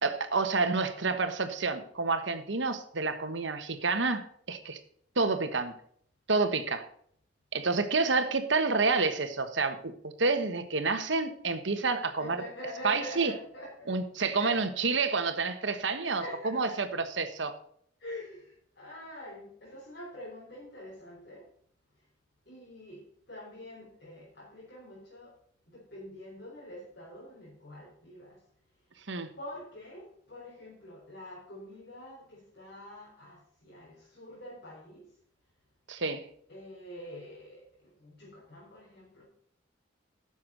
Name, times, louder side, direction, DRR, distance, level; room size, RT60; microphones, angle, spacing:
voice 1, 0.0-4.8 5.2-5.7 6.3-6.9 7.5-12.4 12.8-13.3 13.9-16.9 17.2-17.5 29.1-29.3 35.9-36.2, right 4 dB, 70° right, 9 dB, 1.3 m, -29 dB
voice 2, 12.2-13.9 14.3-14.7 15.5-15.6 16.0-17.0 18.0-21.5 21.9-22.0 22.5-25.4 25.7-28.4 28.9-29.1 29.4-35.1 36.5-39.2, left 1 dB, 55° left, -6 dB, 4.3 m, -45 dB
11.0 x 7.2 x 6.5 m, 0.62 s
head